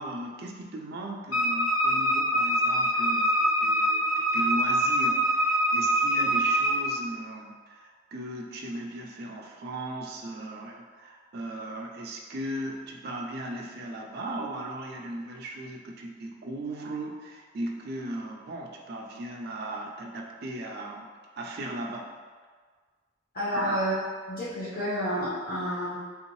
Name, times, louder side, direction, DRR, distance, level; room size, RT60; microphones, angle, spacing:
voice 1, 0.0-21.1 21.4-22.1 23.5-23.8, right 1 dB, 50° right, 0 dB, 0.4 m, -37 dB
Wind instrument woodwind instrument, 1.3-6.8, right 1 dB, 80° left, 0.7 m, -24 dB
voice 2, 23.3-24.0 24.3-25.9, equal, 45° left, -10 dB, 0.8 m, -30 dB
3.4 x 2.7 x 3.0 m, 1.5 s
head